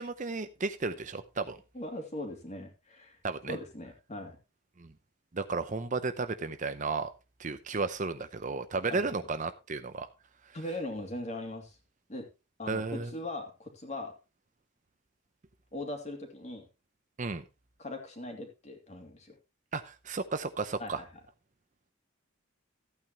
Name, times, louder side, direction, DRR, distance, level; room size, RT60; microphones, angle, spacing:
voice 1, 0.0-1.6 3.2-3.6 4.8-4.9 5.3-7.1 7.4-10.1 12.7-13.1 17.2-17.4 19.7-21.0, right 3 dB, 35° right, 11 dB, 0.6 m, -33 dB
voice 2, 1.7-3.2 3.5-4.4 8.9-9.2 10.5-11.7 12.1-12.3 12.6-14.1 15.7-16.6 17.8-19.3 20.8-21.2, left 1 dB, 35° left, 3 dB, 2.7 m, -40 dB
14.0 x 9.0 x 3.0 m, 0.27 s
head